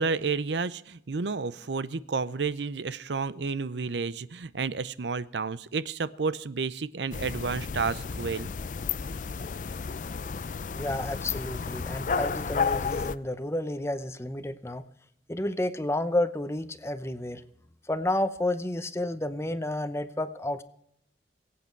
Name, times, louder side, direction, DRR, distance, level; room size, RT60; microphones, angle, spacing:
voice 1, 0.0-8.5, right 4 dB, 85° right, 17 dB, 0.6 m, -31 dB
sound 1, 7.1-13.2, left 5 dB, 45° left, 0.4 m, -32 dB
voice 2, 10.8-14.8 15.3-17.4 17.9-20.6, left 1 dB, 15° left, 12 dB, 0.7 m, -31 dB
22.5 x 8.7 x 4.6 m, 0.69 s
head